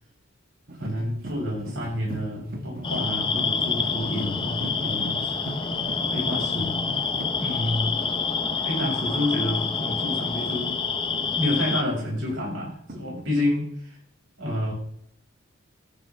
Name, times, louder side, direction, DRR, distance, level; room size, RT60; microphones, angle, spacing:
sound 1, 0.7-7.6 9.9-13.3, right 1 dB, 50° right, 1.5 m, -37 dB
voice 1, 0.7-5.8 6.1-7.1 7.4-8.0 8.6-10.8 11.3-14.0 14.4-14.7, left 1 dB, 75° right, -3 dB, 6.6 m, -29 dB
sound 2, 2.8-11.8, left 5 dB, 25° left, 0.9 m, -27 dB
14.0 x 12.0 x 3.6 m, 0.66 s
head